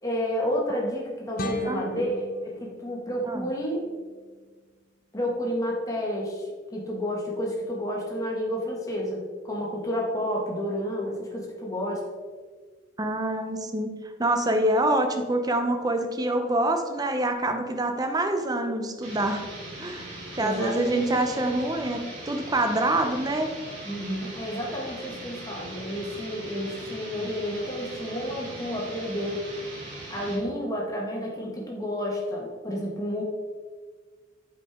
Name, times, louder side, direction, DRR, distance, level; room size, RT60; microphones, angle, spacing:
voice 1, 0.0-3.8 5.1-12.0 20.4-21.4 23.8-29.4 30.1-33.2, equal, 20° left, -2 dB, 1.5 m, -30 dB
sound 1, 1.4-4.4, left 2 dB, 50° left, 0.6 m, -39 dB
voice 2, 1.7-2.0 3.3-3.5 13.0-13.9 14.2-19.4 19.8-23.5, right 1 dB, 20° right, 5 dB, 0.6 m, -26 dB
sound 2, 19.0-30.5, right 1 dB, 85° right, 2.2 m, -40 dB
8.2 x 5.1 x 3.6 m, 1.5 s
head